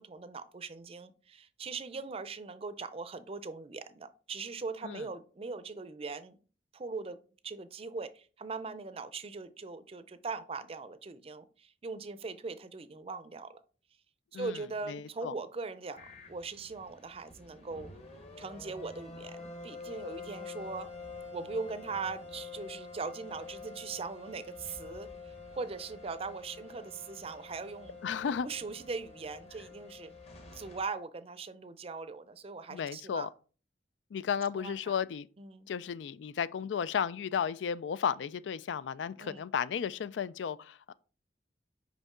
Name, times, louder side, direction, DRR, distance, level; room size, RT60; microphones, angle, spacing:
voice 1, 0.0-6.4 6.7-7.2 7.4-13.6 14.3-17.9 18.4-20.9 21.3-25.1 25.5-28.0 28.4-30.1 30.5-33.3 34.5-35.0 35.4-35.7 39.2-39.5, right 4 dB, 35° right, 0.5 m, -40 dB
voice 2, 14.9-15.3 28.0-28.5 32.7-33.3 34.1-35.3 35.7-40.9, left 7 dB, 85° left, 0.4 m, -34 dB
sound 1, 15.9-30.8, left 4 dB, 35° left, 1.1 m, -47 dB
5.3 x 5.2 x 3.7 m
head